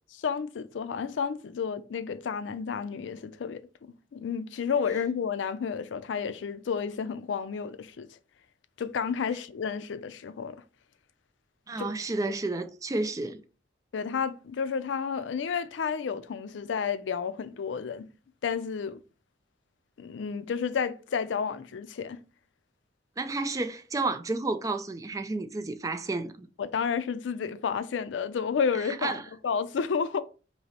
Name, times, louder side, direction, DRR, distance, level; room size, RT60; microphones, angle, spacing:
voice 1, 0.2-8.1 8.8-10.6 11.8-11.9 13.9-18.1 18.4-19.0 20.0-22.2 26.6-29.2 29.4-30.2, left 6 dB, 85° left, 0.4 m, -31 dB
voice 2, 11.7-13.4 23.2-26.5 28.9-29.2, right 3 dB, 20° right, 0.3 m, -31 dB
5.4 x 2.0 x 4.2 m
head